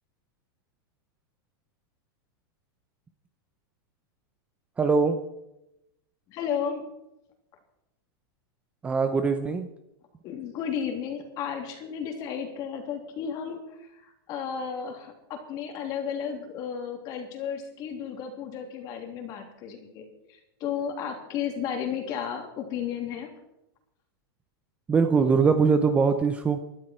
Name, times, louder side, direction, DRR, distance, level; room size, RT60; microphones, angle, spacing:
voice 1, 4.8-5.2 8.8-9.7 24.9-26.6, right 5 dB, 10° right, 7 dB, 0.7 m, -22 dB
voice 2, 6.3-6.8 10.2-23.3, left 7 dB, 30° left, 3 dB, 3.1 m, -33 dB
25.0 x 12.0 x 4.5 m, 0.89 s
supercardioid pair, 165°, 13 cm